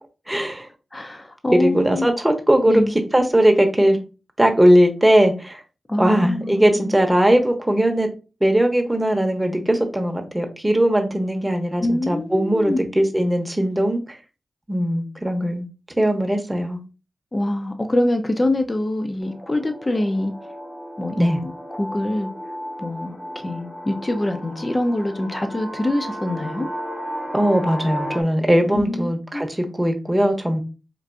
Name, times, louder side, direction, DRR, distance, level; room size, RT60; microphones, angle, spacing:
voice 1, 0.3-0.7 1.5-4.0 4.4-5.6 6.0-8.1 8.4-14.0 14.7-15.7 16.0-16.8 21.2-21.4 27.3-30.6, right 1 dB, 15° right, 0.9 m, -19 dB
voice 2, 0.9-2.1 2.7-2.9 5.9-7.0 11.8-12.8 17.3-20.3 21.0-22.3 22.8-26.7 28.7-29.5, left 1 dB, 30° left, 0.7 m, -25 dB
sound 1, 19.2-28.2, equal, 55° left, 1.4 m, -34 dB
4.5 x 2.6 x 2.6 m
cardioid pair, 55°, 0 cm